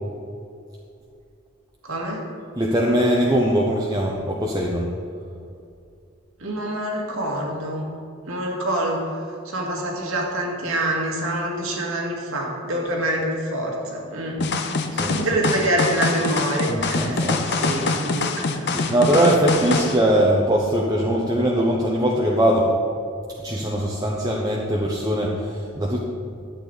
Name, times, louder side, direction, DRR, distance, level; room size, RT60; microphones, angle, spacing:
voice 1, 1.8-2.2 6.4-7.8 8.3-9.1 9.5-14.4 14.9-17.3 17.6-18.7, right 1 dB, 75° right, -1 dB, 2.1 m, -26 dB
voice 2, 2.5-4.9 14.9-15.4 16.7-17.7 18.1-18.2 18.7-22.7 23.4-26.0, right 1 dB, 15° right, -3 dB, 0.8 m, -21 dB
sound 1, 14.4-20.0, left 3 dB, 50° left, 0.7 m, -24 dB
12.0 x 8.7 x 4.0 m, 2.5 s
head